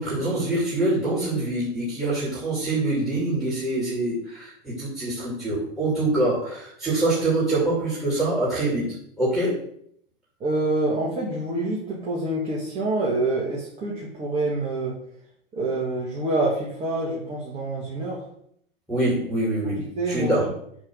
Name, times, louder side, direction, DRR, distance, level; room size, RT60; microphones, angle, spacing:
voice 1, 0.0-8.8 9.2-9.6 18.9-20.5, right 2 dB, ahead, -7 dB, 2.5 m, -25 dB
voice 2, 10.4-14.9 15.5-18.2 20.0-20.4, right 2 dB, 20° right, -4 dB, 1.8 m, -26 dB
7.2 x 3.6 x 6.2 m, 0.68 s
hypercardioid pair, 135°, 30 cm